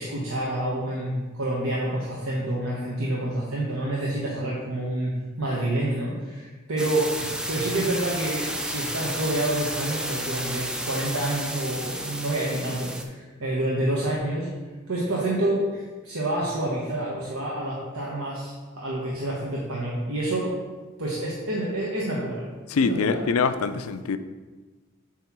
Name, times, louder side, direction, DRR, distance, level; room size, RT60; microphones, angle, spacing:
voice 1, 0.0-5.1 5.4-14.5 14.9-20.5 21.0-22.5 22.8-23.2, right 1 dB, 85° right, -5 dB, 1.2 m, -28 dB
sound 1, 6.8-13.0, right 1 dB, 5° right, 0.3 m, -32 dB
voice 2, 22.7-24.2, left 5 dB, 85° left, 11 dB, 0.4 m, -24 dB
7.5 x 3.1 x 6.0 m, 1.3 s
head